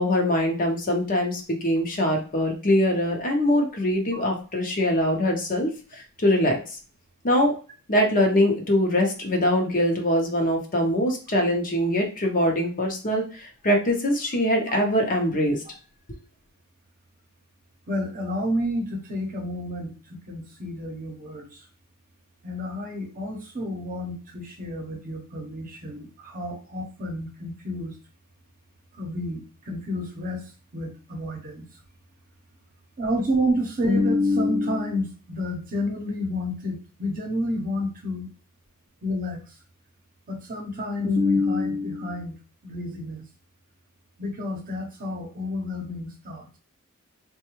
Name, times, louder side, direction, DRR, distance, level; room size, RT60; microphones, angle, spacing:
voice 1, 0.0-6.6 7.2-7.6 7.9-15.6, left 1 dB, 40° left, 1 dB, 0.8 m, -23 dB
voice 2, 17.9-21.6 22.4-27.9 28.9-31.6 33.0-38.3 39.0-39.4 40.3-42.3 42.6-43.2 44.2-46.5, left 1 dB, 40° right, 1 dB, 0.8 m, -29 dB
3.8 x 2.3 x 3.0 m, 0.36 s
head